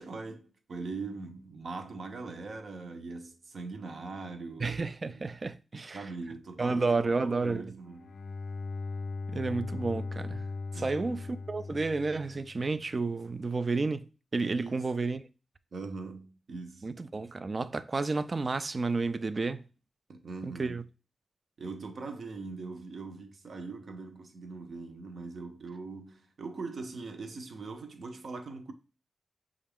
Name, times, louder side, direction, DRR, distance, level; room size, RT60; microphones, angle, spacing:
voice 1, 0.0-5.3 5.9-8.2 10.7-11.1 14.5-14.9 15.7-16.9 20.1-20.8 21.6-28.7, right 3 dB, 60° right, 0.7 m, -41 dB
voice 2, 4.6-6.0 6.6-7.6 9.3-10.5 10.7-14.1 14.3-15.2 16.8-19.6 20.6-20.8, right 3 dB, 35° right, 0.3 m, -31 dB
Bowed string instrument, 7.8-12.8, left 3 dB, 70° left, 0.4 m, -39 dB
6.1 x 2.5 x 3.4 m
wide cardioid pair, 110°, 0 cm